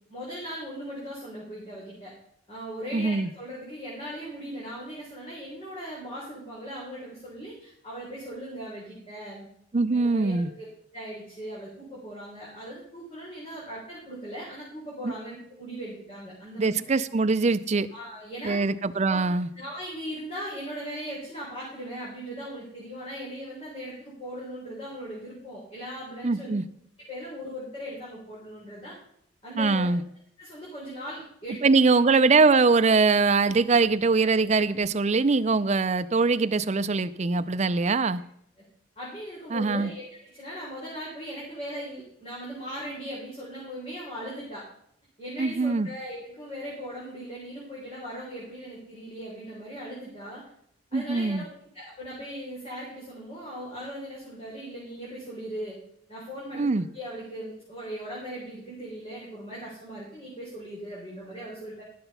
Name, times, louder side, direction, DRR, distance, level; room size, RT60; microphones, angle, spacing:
voice 1, 0.1-2.1 2.5-9.5 9.9-10.6 10.9-16.8 17.9-18.6 19.1-19.3 19.6-26.5 27.1-28.9 29.4-29.9 30.4-32.0 39.0-44.6 45.2-50.4 50.9-55.8 56.1-56.7 56.9-61.8, equal, 30° left, -6 dB, 3.9 m, -39 dB
voice 2, 2.9-3.3 9.7-10.5 15.0-15.1 16.6-17.9 18.4-19.5 26.2-26.6 29.6-30.0 31.6-38.2 39.5-39.9 45.4-45.9 50.9-51.4 56.5-56.9, right 4 dB, 35° right, 12 dB, 0.5 m, -22 dB
12.0 x 6.9 x 5.6 m, 0.70 s
head